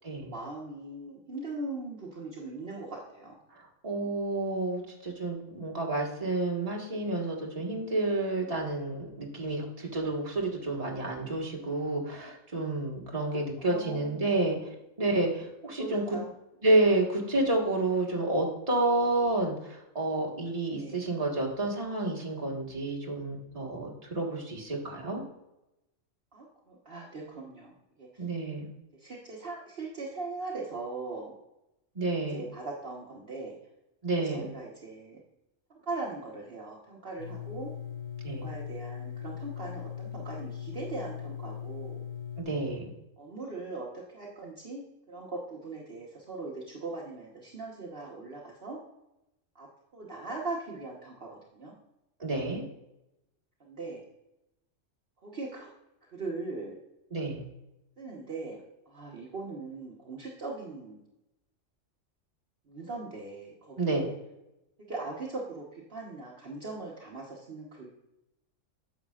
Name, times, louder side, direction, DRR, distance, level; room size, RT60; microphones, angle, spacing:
voice 1, 0.2-3.3 13.6-14.3 15.8-16.3 20.7-21.0 26.3-27.7 28.0-28.2 29.0-31.3 32.3-33.5 34.2-35.2 35.7-37.7 38.3-42.1 43.2-48.8 49.5-49.7 49.9-51.7 53.6-54.0 55.2-55.7 56.1-56.7 58.0-58.6 58.9-61.0 62.7-64.1 64.9-67.9, right 3 dB, 50° right, -3 dB, 1.4 m, -40 dB
voice 2, 3.5-14.6 15.0-16.2 16.6-25.2 28.2-28.7 32.0-32.4 34.0-34.4 38.2-38.5 42.4-42.9 52.2-52.6 57.1-57.4 63.8-64.0, right 2 dB, 30° right, -2 dB, 1.7 m, -30 dB
sound 1, 37.2-42.4, left 8 dB, 65° left, 1.3 m, -39 dB
9.9 x 7.3 x 2.4 m, 0.91 s
omnidirectional pair, 1.3 m